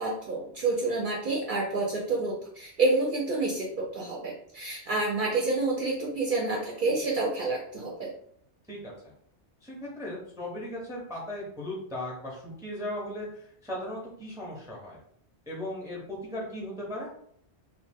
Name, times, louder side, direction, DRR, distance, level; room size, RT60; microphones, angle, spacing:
voice 1, 0.0-8.1, right 3 dB, 60° right, -2 dB, 0.6 m, -28 dB
voice 2, 9.6-15.0 15.5-17.1, left 1 dB, 5° right, -3 dB, 0.6 m, -37 dB
2.6 x 2.1 x 3.4 m, 0.64 s
omnidirectional pair, 1.1 m